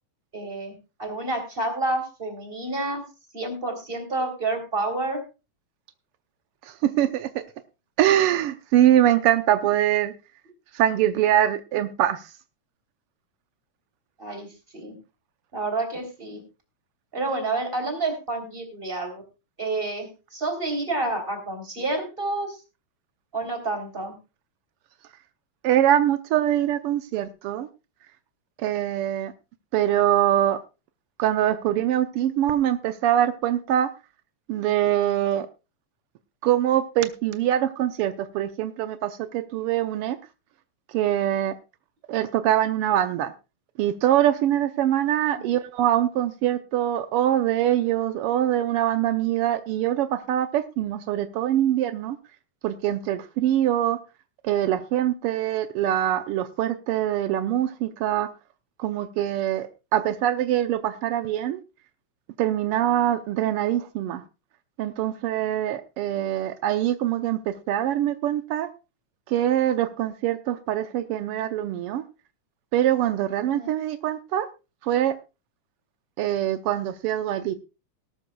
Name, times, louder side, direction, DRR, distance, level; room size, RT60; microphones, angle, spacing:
voice 1, 0.3-3.0 3.3-5.2 14.2-15.0 15.5-16.4 17.1-19.2 19.6-22.6 23.3-24.1 45.3-45.6 73.5-73.7, right 2 dB, 20° right, 6 dB, 3.5 m, -29 dB
voice 2, 6.7-7.4 8.0-10.1 10.7-12.3 25.6-27.7 28.6-29.3 29.7-30.6 31.2-33.9 34.5-35.5 36.4-40.2 40.9-41.5 42.1-43.3 43.8-52.2 52.6-54.0 54.4-58.3 58.8-61.6 62.4-64.2 64.8-68.7 69.3-72.0 72.7-74.5 74.8-75.2 76.2-77.5, right 11 dB, 85° right, 10 dB, 1.2 m, -23 dB
18.5 x 13.0 x 2.3 m, 0.29 s
omnidirectional pair, 3.4 m